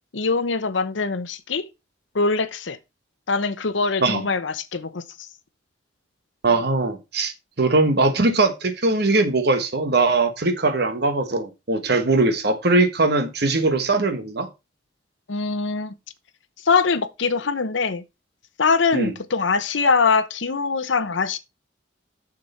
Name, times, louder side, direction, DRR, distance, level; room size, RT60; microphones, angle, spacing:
voice 1, 0.1-1.7 2.1-2.8 3.3-5.0 15.3-15.9 16.6-18.0 18.6-21.4, left 4 dB, 75° left, 0.8 m, -22 dB
voice 2, 6.4-7.3 7.6-14.5 18.9-19.1, right 3 dB, 55° right, 1.3 m, -20 dB
6.8 x 6.6 x 4.2 m
head